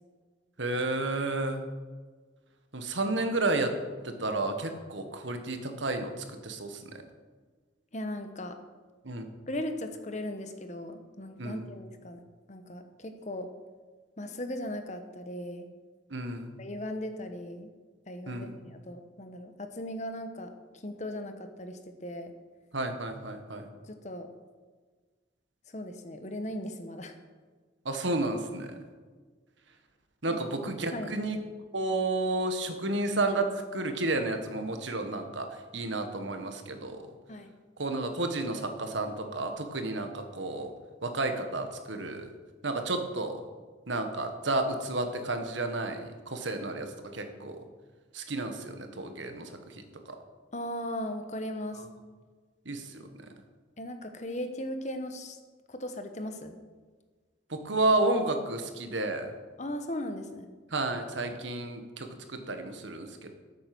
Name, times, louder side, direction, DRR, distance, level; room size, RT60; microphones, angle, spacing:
voice 1, 0.6-1.6 2.7-3.7 4.0-6.9 9.0-9.3 11.4-11.7 16.1-16.5 18.3-18.6 22.7-23.7 27.8-28.8 30.2-31.4 31.7-37.0 37.8-40.7 41.0-42.3 42.6-43.4 43.9-47.6 48.1-49.8 52.6-53.0 57.5-59.3 60.7-63.3, right 2 dB, 80° right, 6 dB, 1.6 m, -31 dB
voice 2, 7.9-8.6 9.5-12.2 12.5-13.5 14.2-15.7 16.6-17.7 18.1-22.3 23.9-24.3 25.7-27.1 30.3-30.4 30.7-31.1 37.3-37.5 50.5-51.8 53.8-55.4 55.7-56.6 59.6-60.5, left 1 dB, 40° left, 7 dB, 1.0 m, -38 dB
13.5 x 8.4 x 6.1 m, 1.4 s
head